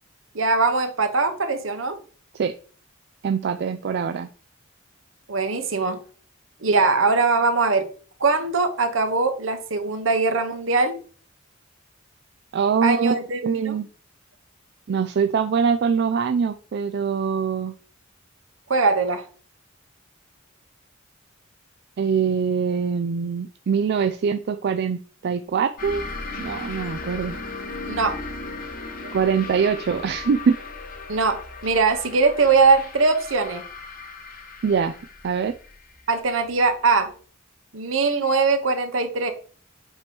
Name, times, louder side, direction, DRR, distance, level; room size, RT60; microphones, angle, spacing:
voice 1, 0.3-2.0 5.3-6.0 6.6-7.9 8.2-11.0 12.8-13.8 18.7-19.2 27.9-28.2 29.0-29.1 31.1-33.6 36.1-37.1 37.7-39.3, right 4 dB, 75° right, 7 dB, 1.1 m, -21 dB
voice 2, 3.2-4.3 12.5-13.9 14.9-17.7 22.0-26.0 26.4-27.4 29.1-30.6 34.6-35.0 35.2-35.5, right 6 dB, 55° right, 8 dB, 0.4 m, -23 dB
sound 1, 25.8-37.0, left 3 dB, 45° left, 1.4 m, -37 dB
8.0 x 3.0 x 5.2 m, 0.41 s
head